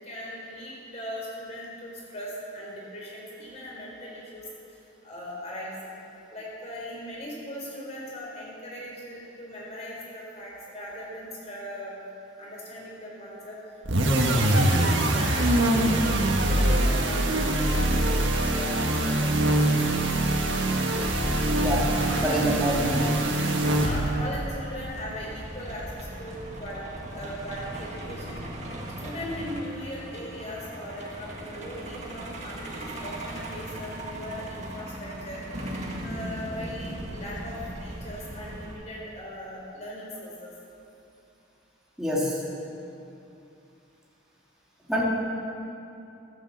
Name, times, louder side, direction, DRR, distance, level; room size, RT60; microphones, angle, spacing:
voice 1, 0.0-4.4 5.0-5.9 6.3-12.0 12.4-13.6 14.0-20.1 22.0-22.2 23.5-28.5 29.0-35.4 36.0-40.5, equal, 35° left, -4 dB, 4.1 m, -39 dB
sound 1, 13.8-24.3, right 1 dB, 80° right, 1.5 m, -23 dB
Truck, 21.0-38.7, right 1 dB, 35° right, 1.8 m, -38 dB
voice 2, 21.6-23.1 42.0-42.4 44.9-45.0, right 1 dB, 5° right, -6 dB, 2.5 m, -26 dB
13.0 x 10.0 x 7.3 m, 2.7 s
head